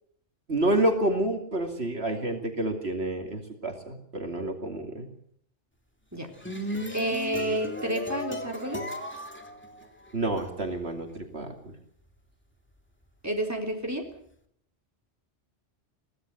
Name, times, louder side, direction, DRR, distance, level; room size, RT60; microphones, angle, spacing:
voice 1, 0.5-5.1 10.1-11.7, right 1 dB, 60° right, 4 dB, 2.9 m, -29 dB
sound 1, 6.1-10.4, equal, 10° left, 2.5 m, -36 dB
voice 2, 6.9-8.8 13.2-14.1, right 1 dB, 15° right, 2 dB, 4.1 m, -30 dB
23.5 x 17.0 x 7.9 m, 0.68 s
omnidirectional pair, 1.2 m